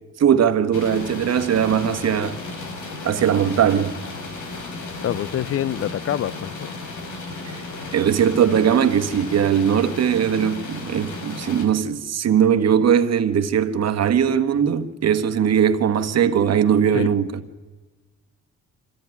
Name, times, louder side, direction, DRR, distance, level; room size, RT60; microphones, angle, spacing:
voice 1, 0.2-2.4 3.0-3.9 7.4-7.6 7.9-17.4, right 8 dB, 55° right, 1.6 m, -20 dB
sound 1, 0.7-11.7, left 3 dB, 75° left, 4.2 m, -34 dB
voice 2, 5.0-6.7 16.9-17.1, left 11 dB, 50° left, 0.6 m, -26 dB
25.5 x 14.5 x 9.7 m
cardioid pair, 90°, 30 cm